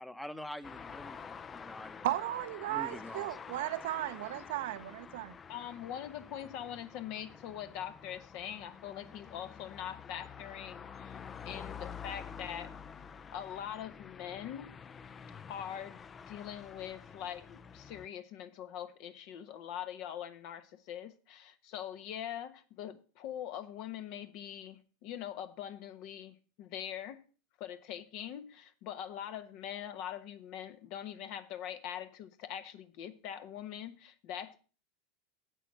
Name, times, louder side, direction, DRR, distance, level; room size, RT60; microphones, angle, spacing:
voice 1, 0.0-2.1 2.7-3.4, left 1 dB, 5° left, 0.9 m, -45 dB
sound 1, 0.6-18.1, left 6 dB, 25° left, 0.5 m, -48 dB
voice 2, 2.0-5.4, right 15 dB, 70° right, 0.7 m, -35 dB
voice 3, 5.5-11.2 11.4-12.7 13.3-14.7 15.5-16.0 16.3-27.2 27.6-34.6, left 10 dB, 55° left, 1.2 m, -43 dB
9.0 x 7.5 x 6.2 m
hypercardioid pair, 95°, 0 cm